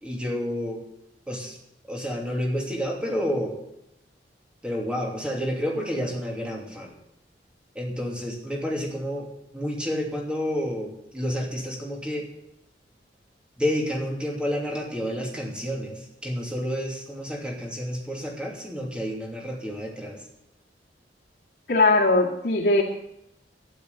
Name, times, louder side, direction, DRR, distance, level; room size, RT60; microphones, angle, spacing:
voice 1, 0.0-0.8 1.3-1.5 1.9-3.6 4.6-6.9 7.7-9.3 9.5-12.3 13.6-20.2, equal, 5° right, -1 dB, 2.8 m, -30 dB
voice 2, 21.7-22.8, left 2 dB, 65° left, -4 dB, 2.2 m, -20 dB
12.0 x 10.5 x 7.0 m, 0.81 s
head